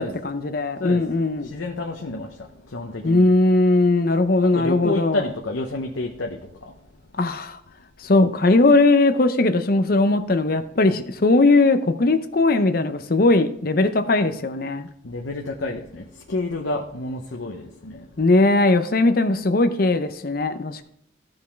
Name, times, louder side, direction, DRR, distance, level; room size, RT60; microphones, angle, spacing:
voice 1, 0.0-1.5 3.0-5.3 7.2-7.6 8.0-14.9 18.2-20.9, left 2 dB, 50° left, 10 dB, 0.6 m, -19 dB
voice 2, 1.4-3.3 4.4-6.7 15.0-18.1, left 2 dB, 85° left, 1 dB, 0.9 m, -30 dB
14.5 x 5.3 x 3.4 m, 0.70 s
head